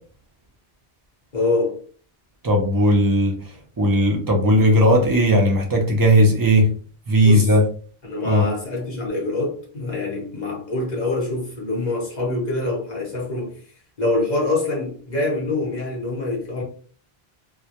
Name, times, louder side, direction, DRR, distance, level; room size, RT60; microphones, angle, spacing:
voice 1, 1.3-1.8 7.2-7.5 8.0-13.6 14.0-16.6, left 2 dB, 45° left, 0.9 m, -25 dB
voice 2, 2.4-3.4 3.8-6.7 7.1-7.6 8.3-8.5, equal, 30° right, 0.4 m, -17 dB
2.2 x 2.1 x 2.8 m
omnidirectional pair, 1.0 m